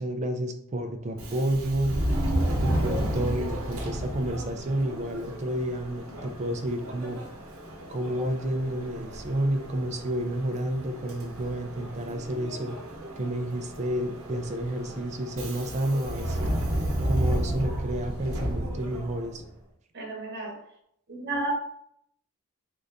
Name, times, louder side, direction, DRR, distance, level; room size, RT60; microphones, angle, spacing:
voice 1, 0.0-2.0 2.6-7.2 7.9-12.8 13.2-16.5 17.0-19.4, right 1 dB, 30° right, 7 dB, 0.4 m, -30 dB
Subway metro underground, 1.1-19.5, right 1 dB, 90° right, 1.0 m, -32 dB
voice 2, 19.9-20.6 21.1-21.5, right 2 dB, 50° right, -1 dB, 1.0 m, -32 dB
3.8 x 2.5 x 3.3 m, 0.71 s
head